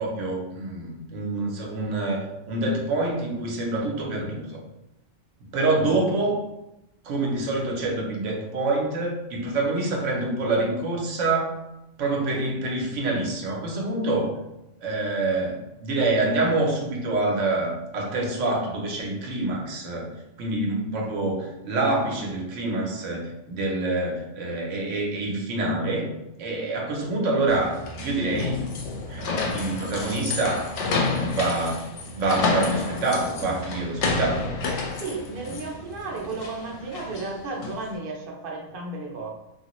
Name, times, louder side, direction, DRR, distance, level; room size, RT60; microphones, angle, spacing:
voice 1, 0.0-4.6 5.5-6.4 7.0-11.6 12.0-14.3 14.8-20.1 20.4-26.1 26.4-28.7 29.1-31.9 32.1-34.6, right 2 dB, 80° right, -1 dB, 1.0 m, -26 dB
sound 1, 27.5-37.9, left 3 dB, 70° left, 0.9 m, -30 dB
voice 2, 35.0-39.3, right 3 dB, 55° right, 0 dB, 0.8 m, -33 dB
3.1 x 2.5 x 2.9 m, 0.91 s
omnidirectional pair, 1.3 m